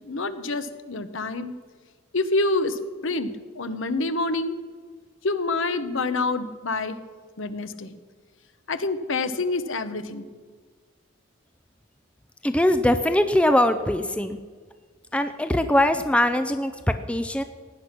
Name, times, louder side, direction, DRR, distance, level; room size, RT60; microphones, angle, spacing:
voice 1, 0.0-1.5 2.1-4.6 5.2-7.0 7.4-7.9 8.7-10.3, left 3 dB, 60° left, 11 dB, 0.9 m, -27 dB
voice 2, 12.4-14.4 15.1-17.4, left 1 dB, 5° left, 9 dB, 0.5 m, -22 dB
17.5 x 10.5 x 6.0 m, 1.6 s
head